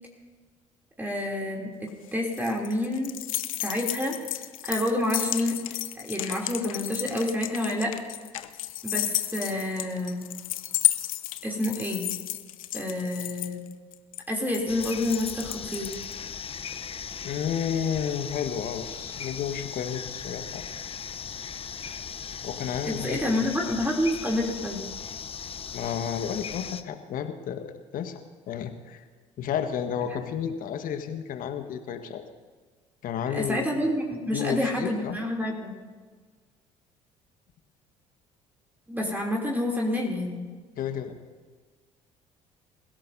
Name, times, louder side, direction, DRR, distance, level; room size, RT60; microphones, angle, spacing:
voice 1, 1.0-3.1 3.6-4.1 4.6-5.6 5.9-7.9 8.8-10.3 11.4-12.1 12.7-13.6 14.3-15.9 22.9-24.8 30.1-30.2 33.3-35.8 38.9-40.5, left 1 dB, 10° right, -1 dB, 3.2 m, -28 dB
sound 1, 1.9-16.1, left 14 dB, 85° left, 0.6 m, -32 dB
sound 2, 14.7-26.8, left 7 dB, 35° left, 0.8 m, -38 dB
voice 2, 17.2-20.6 22.4-23.7 25.7-29.0 29.4-32.2 33.0-33.8 34.3-35.2 40.8-41.2, left 8 dB, 55° left, 7 dB, 1.5 m, -32 dB
28.0 x 16.5 x 2.8 m, 1.4 s
hypercardioid pair, 60°, 17 cm